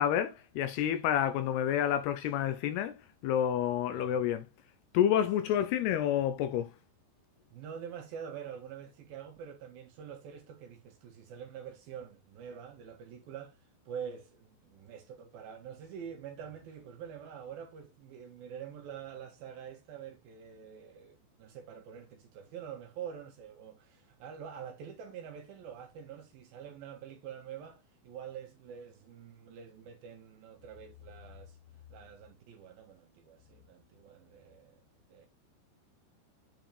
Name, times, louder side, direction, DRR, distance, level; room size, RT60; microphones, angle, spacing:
voice 1, 0.0-3.0 3.2-4.5 4.9-6.7, left 10 dB, 75° left, 2.6 m, -29 dB
voice 2, 7.5-13.6 13.9-31.6 31.9-34.8 35.1-35.3, right 8 dB, 65° right, 2.7 m, -46 dB
9.2 x 4.5 x 3.3 m
omnidirectional pair, 5.1 m